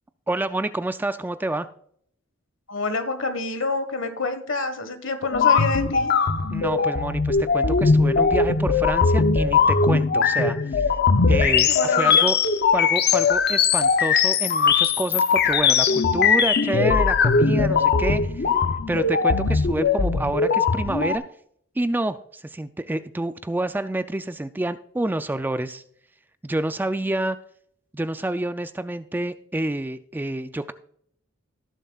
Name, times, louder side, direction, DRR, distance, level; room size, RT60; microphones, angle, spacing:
voice 1, 0.3-1.7 6.5-10.9 11.3-12.4 12.7-18.5 18.9-21.2 21.8-25.8 26.4-27.4 27.9-30.7, right 1 dB, 10° right, 11 dB, 0.3 m, -28 dB
voice 2, 2.7-6.1 11.7-12.3, left 3 dB, 65° left, 9 dB, 1.4 m, -27 dB
sound 1, 5.3-21.2, left 5 dB, 50° left, 0.7 m, -20 dB
17.5 x 7.3 x 2.4 m, 0.65 s
head